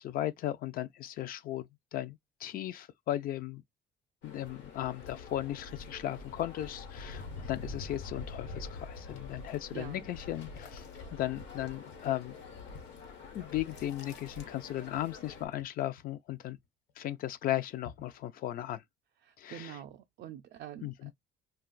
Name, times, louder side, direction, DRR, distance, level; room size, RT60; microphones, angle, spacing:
voice 1, 0.0-3.6 4.2-10.8 11.1-12.4 13.3-16.6 17.0-18.8 19.4-19.8 20.8-21.1, left 13 dB, 55° left, 0.4 m, -36 dB
sound 1, 4.2-15.5, left 3 dB, 90° left, 1.1 m, -45 dB
voice 2, 9.7-10.1 19.2-21.1, right 11 dB, 60° right, 0.4 m, -46 dB
sound 2, 10.5-15.0 15.3-16.9 17.2-18.2, left 6 dB, 70° left, 1.2 m, -55 dB
2.4 x 2.3 x 3.8 m
cardioid pair, 135°, 18 cm